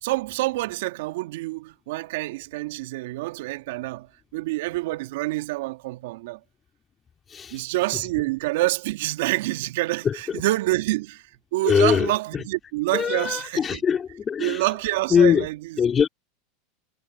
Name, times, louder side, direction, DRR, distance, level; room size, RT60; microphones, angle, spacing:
voice 1, 0.0-4.1 4.3-6.4 7.5-13.8 14.4-15.8, right 19 dB, 70° right, 1.9 m, -27 dB
voice 2, 10.0-10.4 11.7-12.1 12.9-14.6 15.1-15.5 15.8-16.1, left 7 dB, 30° left, 2.4 m, -21 dB
hypercardioid pair, 95°, 0 cm